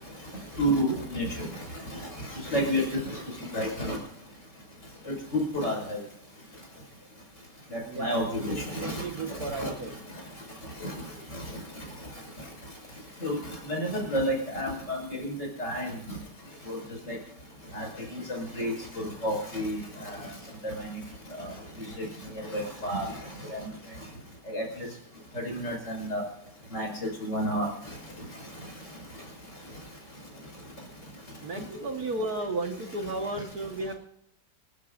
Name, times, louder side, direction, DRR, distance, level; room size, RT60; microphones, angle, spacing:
voice 1, 0.6-1.6 1.9-2.0 2.3-4.0 5.1-6.0 7.7-9.0 9.3-9.7 10.8-10.9 11.3-11.4 13.2-13.4 13.7-15.9 16.7-16.8 17.1-17.2 17.7-20.3 20.6-20.9 21.4-21.5 21.8-22.1 22.5-23.1 23.5-23.6 24.5-24.9 25.3-26.2 26.7-27.7, equal, 40° left, 0 dB, 6.4 m, -31 dB
voice 2, 7.9-10.0 31.4-33.9, right 2 dB, 60° right, 4 dB, 2.0 m, -34 dB
28.0 x 13.5 x 2.6 m, 0.76 s
omnidirectional pair, 1.9 m